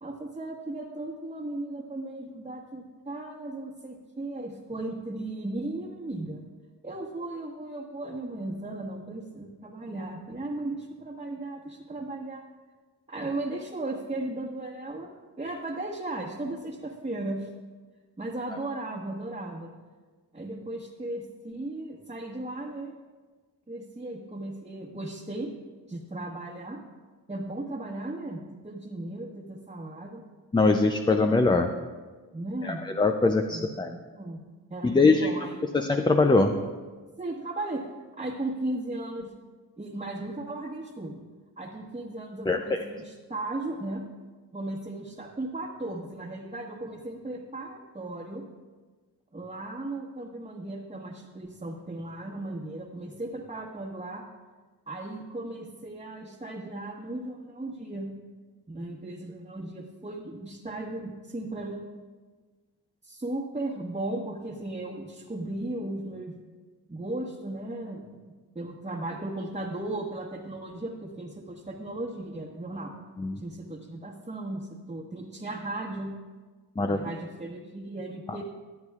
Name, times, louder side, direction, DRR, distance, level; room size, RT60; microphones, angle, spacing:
voice 1, 0.0-6.4 6.8-12.4 13.1-15.1 15.4-17.5 18.2-19.7 20.3-22.9 23.7-25.5 25.9-26.8 27.3-30.2 32.3-32.8 33.5-34.4 34.7-35.8 37.2-37.8 38.2-39.3 39.8-41.2 41.6-44.0 44.5-48.4 49.3-54.2 54.9-58.1 58.7-61.9 63.0-66.3 66.9-73.0 73.4-76.1 76.9-78.4, right 2 dB, 15° right, -5 dB, 1.3 m, -36 dB
voice 2, 30.5-31.7 32.6-34.0 34.8-35.3 35.7-36.5 42.5-42.8 73.2-73.4 76.8-77.0 78.3-78.4, left 3 dB, 10° left, 6 dB, 0.4 m, -22 dB
22.0 x 7.9 x 2.4 m, 1.4 s
cardioid pair, 80°, 40 cm